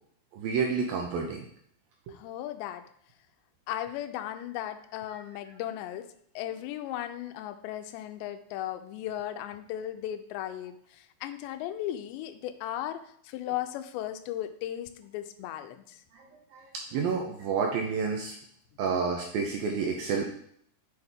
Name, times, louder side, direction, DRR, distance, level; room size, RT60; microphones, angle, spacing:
voice 1, 0.3-1.4 2.1-2.2 5.1-5.2 16.1-16.7 16.9-18.4 18.8-20.3, right 5 dB, 80° right, 1 dB, 2.2 m, -30 dB
voice 2, 2.1-2.8 3.7-6.1 6.4-16.0 18.8-18.9, left 12 dB, 85° left, 10 dB, 2.8 m, -36 dB
7.8 x 6.3 x 3.6 m, 0.65 s
omnidirectional pair, 5.1 m